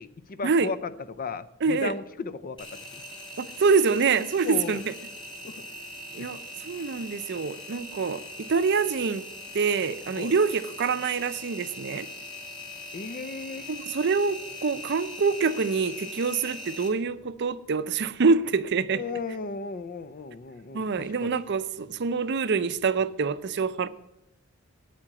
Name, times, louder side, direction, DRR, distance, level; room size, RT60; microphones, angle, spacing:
voice 1, 0.0-2.6 4.4-4.8 5.4-5.6 6.2-6.3 10.2-10.3 12.9-13.7 18.9-21.3, left 4 dB, 40° left, 0.5 m, -35 dB
voice 2, 1.6-1.9 3.4-4.9 6.1-9.3 9.5-12.1 13.7-19.0 20.7-23.9, right 5 dB, 55° right, 0.5 m, -26 dB
Engine, 2.6-16.9, left 1 dB, 25° left, 2.5 m, -41 dB
8.7 x 7.5 x 8.7 m
head